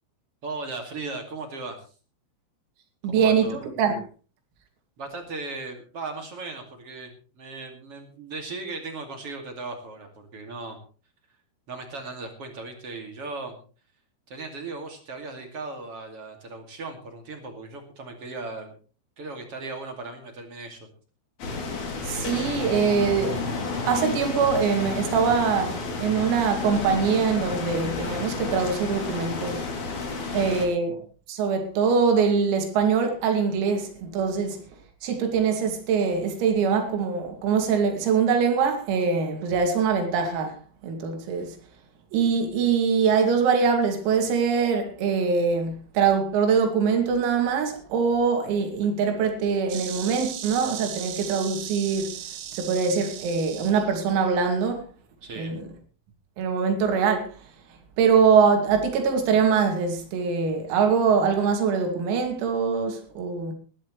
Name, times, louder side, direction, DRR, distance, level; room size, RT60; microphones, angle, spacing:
voice 1, 0.4-1.9 3.0-3.6 5.0-10.8 11.7-13.6 14.3-18.8 19.2-20.9 30.3-30.7 55.2-55.5, right 3 dB, 40° right, 2.2 m, -37 dB
voice 2, 3.0-4.0 22.1-23.4 23.8-29.6 30.3-31.0 31.3-34.6 35.0-40.6 40.8-41.6 42.1-52.1 52.5-54.8 55.4-55.7 56.4-57.4 58.0-63.5, right 6 dB, 90° right, 5.2 m, -23 dB
sound 1, 21.4-30.7, left 4 dB, 40° left, 3.8 m, -31 dB
Insect, 49.7-54.7, right 10 dB, 75° right, 3.8 m, -38 dB
20.0 x 13.5 x 3.2 m
omnidirectional pair, 5.9 m